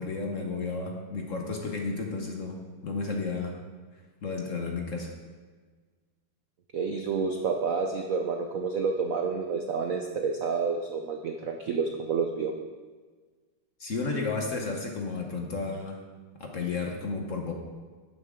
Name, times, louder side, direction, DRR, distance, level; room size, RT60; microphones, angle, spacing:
voice 1, 0.0-3.6 4.2-5.1 13.8-16.0 16.4-17.5, left 4 dB, 45° left, 2 dB, 1.1 m, -32 dB
voice 2, 6.7-12.5, right 5 dB, 70° right, 4 dB, 0.8 m, -29 dB
12.5 x 9.0 x 3.7 m, 1.4 s
omnidirectional pair, 2.3 m